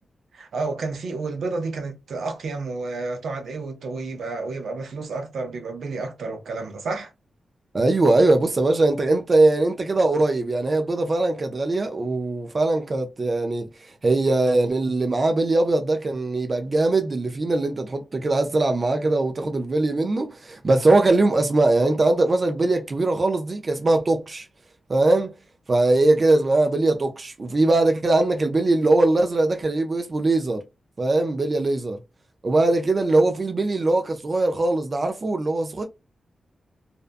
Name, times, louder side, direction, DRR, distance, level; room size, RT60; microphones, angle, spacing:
voice 1, 0.3-7.1, right 3 dB, 80° right, 0.6 m, -30 dB
voice 2, 7.7-13.6 14.0-24.5 24.9-25.3 25.7-30.6 31.0-32.0 32.4-35.8, right 2 dB, 35° right, 0.4 m, -21 dB
2.5 x 2.2 x 2.4 m
wide cardioid pair, 100°, 0 cm